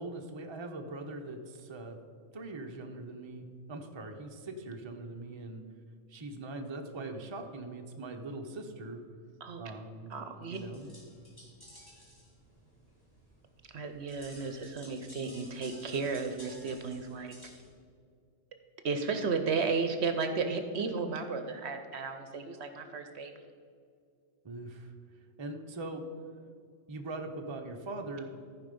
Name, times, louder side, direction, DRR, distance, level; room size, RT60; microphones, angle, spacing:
voice 1, 0.0-2.0 2.3-5.6 6.1-9.0 9.6-10.1 10.5-10.9 24.4-24.9 25.4-26.0 26.9-28.3, right 2 dB, 25° right, 3 dB, 0.7 m, -41 dB
voice 2, 10.1-10.6 13.7-17.4 18.8-23.3, right 4 dB, 60° right, 7 dB, 0.9 m, -34 dB
sound 1, 10.5-17.7, equal, 15° left, 2.6 m, -54 dB
14.5 x 5.0 x 5.3 m, 2.3 s
omnidirectional pair, 1.3 m